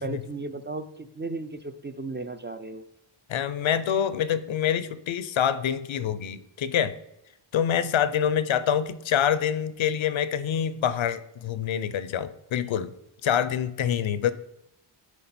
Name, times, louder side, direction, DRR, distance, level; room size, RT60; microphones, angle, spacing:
voice 1, 0.0-2.9, right 3 dB, 25° right, 10 dB, 0.4 m, -35 dB
voice 2, 3.3-7.0 7.5-12.9 13.2-14.3, left 9 dB, 70° left, 14 dB, 0.6 m, -26 dB
10.0 x 3.6 x 4.2 m, 0.84 s
cardioid pair, 65°, 49 cm